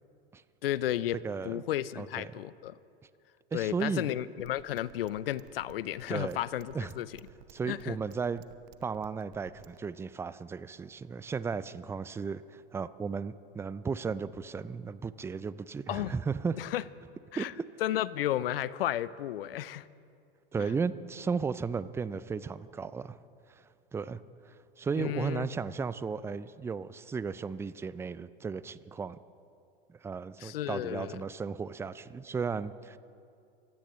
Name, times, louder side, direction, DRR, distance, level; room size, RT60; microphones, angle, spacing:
voice 1, 0.6-1.2 1.4-2.8 3.5-7.1 7.7-8.0 15.9-16.1 16.6-16.8 17.3-17.5 17.8-19.9 20.6-20.7 25.0-25.5 30.4-31.2, left 13 dB, 75° left, 19 dB, 0.6 m, -33 dB
voice 2, 1.2-1.6 2.0-2.3 3.5-4.1 6.1-6.4 6.7-6.9 7.5-8.4 8.8-16.6 17.4-17.6 20.5-23.2 23.5-23.6 23.9-24.2 24.5-29.2 29.9-33.0, right 5 dB, 10° right, 16 dB, 0.4 m, -35 dB
sound 1, 4.4-9.8, right 13 dB, 60° right, 0.9 m, -54 dB
26.5 x 15.5 x 3.2 m, 2.4 s
hypercardioid pair, 95°, 29 cm